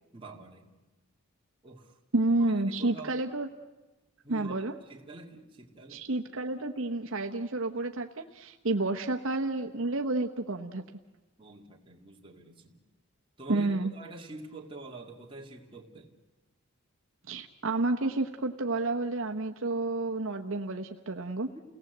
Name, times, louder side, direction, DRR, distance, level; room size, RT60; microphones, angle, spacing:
voice 1, 0.1-0.8 1.6-2.0 2.4-3.2 4.2-6.0 11.4-12.8 13.4-16.2 21.5-21.6, right 3 dB, 25° right, 0 dB, 2.2 m, -46 dB
voice 2, 2.1-3.5 4.3-4.7 5.9-10.8 13.5-13.9 17.3-21.5, right 2 dB, 65° right, 4 dB, 1.0 m, -30 dB
29.5 x 18.5 x 8.0 m, 1.2 s
head